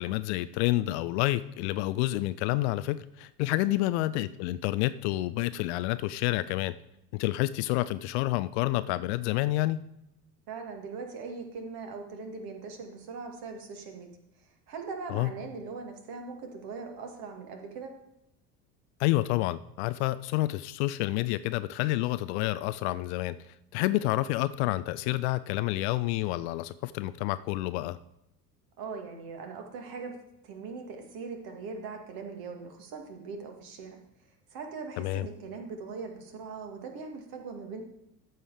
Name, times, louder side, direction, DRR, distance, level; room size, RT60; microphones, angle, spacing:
voice 1, 0.0-6.7 7.1-9.8 15.1-15.3 19.0-23.4 23.7-28.0 35.0-35.3, left 17 dB, 45° left, 15 dB, 0.4 m, -29 dB
voice 2, 10.5-14.1 14.4-17.9 28.8-30.2 30.4-34.0 34.5-37.8, right 4 dB, 50° right, 3 dB, 2.1 m, -40 dB
13.5 x 5.5 x 4.9 m, 0.87 s
figure-of-eight pair, 65°, 48 cm